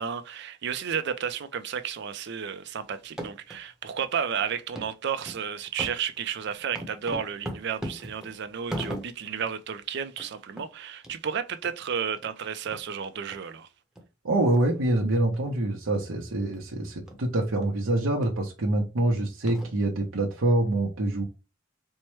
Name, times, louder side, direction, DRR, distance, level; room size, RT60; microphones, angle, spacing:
voice 1, 0.0-13.7, right 7 dB, 55° right, 0.4 m, -32 dB
sound 1, 3.0-3.6 4.0-4.1 4.8-4.9 5.3-5.4 5.8-9.4 9.8-9.9 10.1-10.3 10.6-10.7 11.0-11.1 11.6-11.7 12.2-12.3 12.7-12.8 13.3-13.4 14.0-14.1 14.5-14.6 15.3-15.5 15.9-16.1 16.5-16.6 17.1-17.2 17.6-17.7 18.2-18.4 19.0-19.1 19.5-20.0, right 1 dB, 5° right, 0.8 m, -38 dB
voice 2, 14.2-21.2, right 1 dB, 85° right, 0.8 m, -25 dB
4.4 x 2.1 x 3.0 m
head